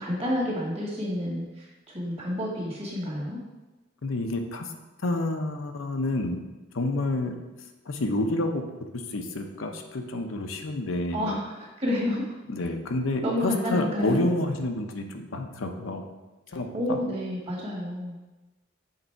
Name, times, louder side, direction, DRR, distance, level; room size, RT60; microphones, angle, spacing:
voice 1, 0.0-1.7 1.9-3.4 11.1-12.3 13.2-14.2 16.7-18.2, left 1 dB, 30° right, -4 dB, 1.7 m, -29 dB
voice 2, 4.0-4.7 5.0-6.4 6.7-7.3 7.9-8.6 8.9-11.3 12.5-16.0 16.5-17.0, left 2 dB, 80° left, 4 dB, 0.7 m, -29 dB
6.6 x 3.9 x 4.5 m, 1.1 s
head